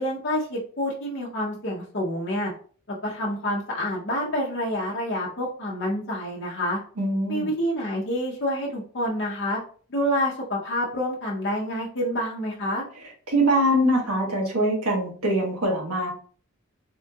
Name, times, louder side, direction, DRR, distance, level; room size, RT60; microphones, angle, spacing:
voice 1, 0.0-2.5 2.9-6.8 7.3-9.6 9.9-12.8, equal, 50° left, -4 dB, 0.6 m, -28 dB
voice 2, 7.0-7.5 13.3-16.1, right 1 dB, 85° right, 0 dB, 1.1 m, -23 dB
3.6 x 2.3 x 2.6 m, 0.44 s
head